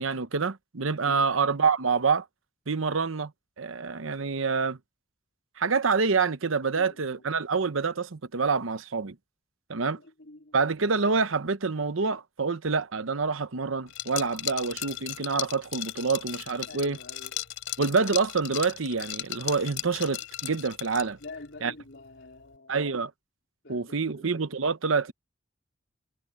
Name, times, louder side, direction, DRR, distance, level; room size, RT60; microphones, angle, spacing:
voice 1, 0.0-2.2 2.7-3.3 3.6-4.8 5.6-9.2 9.7-10.0 10.5-17.0 17.8-21.2 21.6-21.7 22.7-23.1 23.7-25.1, right 4 dB, 85° right, 0.9 m, -27 dB
voice 2, 6.7-7.2 9.8-10.6 16.7-17.4 21.2-22.9 23.6-24.3, left 2 dB, 65° left, 4.0 m, -47 dB
Liquid, 13.9-21.3, left 13 dB, 85° left, 4.3 m, -36 dB
head